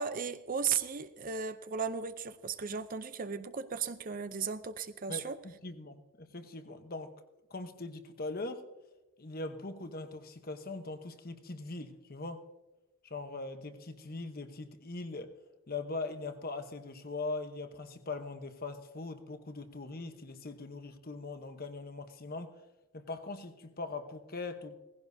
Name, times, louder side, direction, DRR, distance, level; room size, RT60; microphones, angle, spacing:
voice 1, 0.0-5.4, right 6 dB, 40° right, 12 dB, 0.5 m, -35 dB
voice 2, 5.1-7.1 7.5-8.7 9.2-12.4 13.0-15.3 15.7-22.5 22.9-24.8, left 3 dB, 40° left, 8 dB, 0.9 m, -41 dB
17.5 x 16.0 x 2.7 m, 1.1 s
head